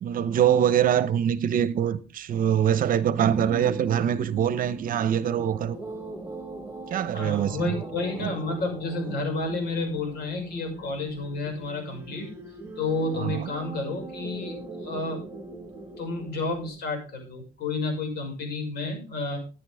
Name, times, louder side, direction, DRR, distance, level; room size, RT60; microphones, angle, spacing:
voice 1, 0.0-5.8 6.9-7.8 8.2-8.3 13.2-13.5, right 9 dB, 55° right, 0.9 m, -24 dB
sound 1, 3.2-16.7, right 2 dB, 10° right, 4.9 m, -40 dB
voice 2, 7.1-12.3 12.8-15.2 16.0-19.4, left 3 dB, 70° left, 6.1 m, -31 dB
14.0 x 10.0 x 3.5 m
cardioid pair, 110°, 17 cm